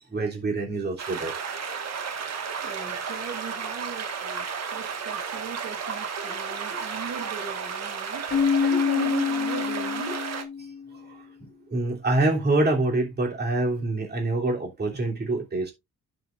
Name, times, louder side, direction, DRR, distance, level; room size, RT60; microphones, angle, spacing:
voice 1, 0.1-1.4 1.9-2.4 10.9-15.7, right 2 dB, 35° right, 3.1 m, -26 dB
sound 1, 1.0-10.4, right 6 dB, 55° right, 1.7 m, -33 dB
voice 2, 2.6-8.3 8.6-10.2, right 5 dB, 75° right, 2.9 m, -38 dB
Keyboard (musical), 8.3-10.9, left 6 dB, 40° left, 0.7 m, -26 dB
11.0 x 6.8 x 2.5 m
cardioid pair, 120°, 31 cm